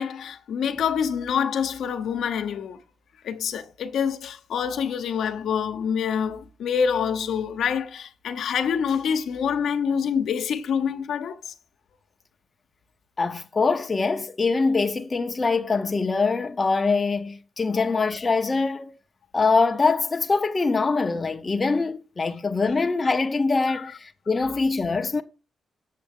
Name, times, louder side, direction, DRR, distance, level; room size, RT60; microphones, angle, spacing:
voice 1, 0.0-2.8 3.2-11.5 23.7-23.8, left 7 dB, 80° left, 0.9 m, -26 dB
voice 2, 13.2-18.9 19.3-25.2, left 4 dB, 30° left, 0.8 m, -23 dB
7.6 x 7.2 x 3.7 m
cardioid pair, 90°, 0 cm